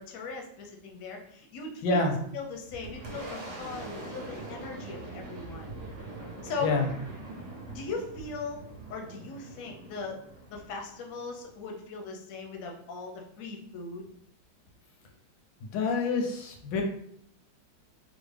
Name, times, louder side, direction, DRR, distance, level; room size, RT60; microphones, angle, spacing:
voice 1, 0.0-5.8 6.4-6.7 7.7-8.6 8.9-10.2 10.5-14.0, left 4 dB, 65° left, 1 dB, 0.9 m, -39 dB
voice 2, 1.8-2.1 6.6-6.9 15.7-16.8, left 3 dB, 85° left, 2 dB, 1.4 m, -27 dB
Boom, 2.2-11.6, right 2 dB, 65° right, 1.3 m, -43 dB
3.7 x 2.0 x 3.3 m, 0.68 s
omnidirectional pair, 2.1 m